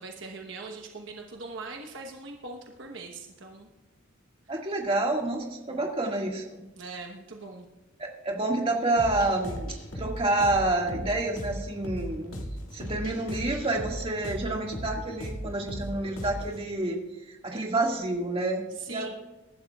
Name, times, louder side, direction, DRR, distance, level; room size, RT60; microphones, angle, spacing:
voice 1, 0.0-3.7 5.7-5.8 6.8-7.7 18.7-19.1, right 3 dB, 60° right, 2 dB, 1.1 m, -41 dB
voice 2, 4.5-6.4 8.0-12.4 12.7-17.0 17.3-19.1, right 2 dB, 25° right, 0 dB, 1.9 m, -28 dB
sound 1, 9.0-16.6, equal, 85° left, 2.1 m, -37 dB
23.0 x 12.0 x 2.3 m, 1.0 s
head